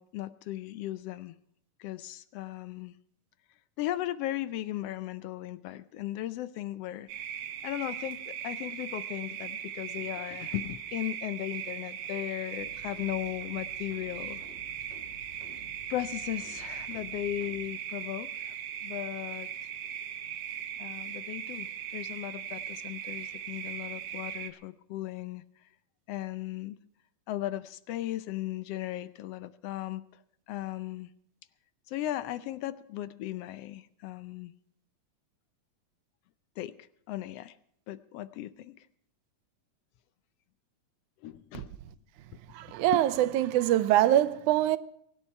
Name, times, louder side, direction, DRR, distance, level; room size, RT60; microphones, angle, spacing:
voice 1, 0.0-1.3 1.8-2.9 3.8-7.1 7.6-14.4 15.9-18.6 18.8-19.5 20.8-25.4 26.1-26.8 27.3-30.0 30.5-31.1 31.9-34.5 36.6-36.7 37.1-37.5 37.9-38.9 41.2-41.7 42.9-43.0, left 14 dB, 80° left, 1.4 m, -37 dB
sound 1, 7.1-24.5, right 9 dB, 65° right, 2.1 m, -39 dB
sound 2, 12.6-17.7, left 2 dB, 25° left, 2.0 m, -53 dB
voice 2, 42.5-44.8, right 13 dB, 85° right, 2.2 m, -24 dB
23.5 x 10.0 x 4.5 m
omnidirectional pair, 3.5 m